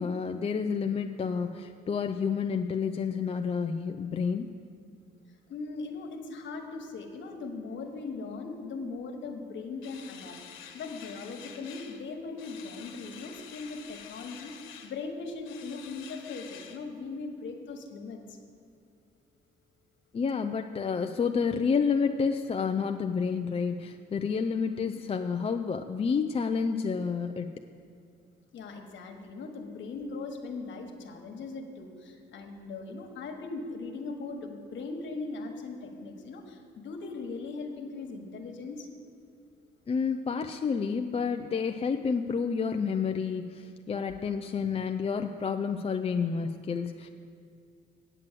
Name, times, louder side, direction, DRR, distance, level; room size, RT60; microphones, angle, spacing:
voice 1, 0.0-4.5 20.1-27.5 39.9-47.1, left 5 dB, 30° left, 6 dB, 0.4 m, -29 dB
voice 2, 5.5-18.4 28.5-38.9, left 3 dB, 70° left, 3 dB, 1.5 m, -39 dB
sound 1, 9.8-12.0 12.4-15.0 15.5-16.8, left 8 dB, 90° left, 1.2 m, -48 dB
9.0 x 7.6 x 7.6 m, 2.3 s
cardioid pair, 90°, 20 cm